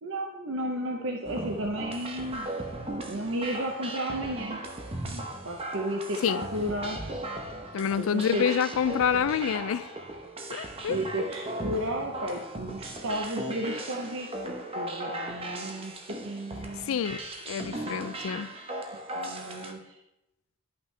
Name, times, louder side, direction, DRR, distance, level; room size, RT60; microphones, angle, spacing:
voice 1, 0.0-2.5 3.0-4.6 5.0-7.0 8.1-8.6 10.9-14.3 14.7-15.9 16.2-17.0 18.9-20.0, right 1 dB, 70° right, 1 dB, 0.9 m, -33 dB
sound 1, 1.2-19.7, right 1 dB, 30° right, 0.9 m, -37 dB
voice 2, 6.2-6.7 7.7-9.9 10.5-11.3 16.8-18.5, left 7 dB, 75° left, 15 dB, 0.4 m, -28 dB
11.5 x 5.8 x 3.3 m, 0.92 s
head